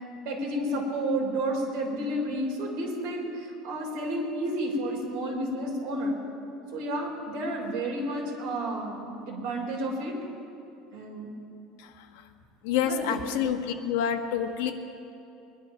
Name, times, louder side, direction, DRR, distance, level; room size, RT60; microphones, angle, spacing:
voice 1, 0.3-6.2 6.7-10.2 10.9-11.3 12.8-13.2, right 1 dB, 55° right, -1 dB, 3.7 m, -31 dB
voice 2, 12.6-14.7, left 8 dB, 75° left, 5 dB, 1.2 m, -27 dB
21.5 x 11.0 x 5.9 m, 2.7 s
cardioid pair, 175°, 0 cm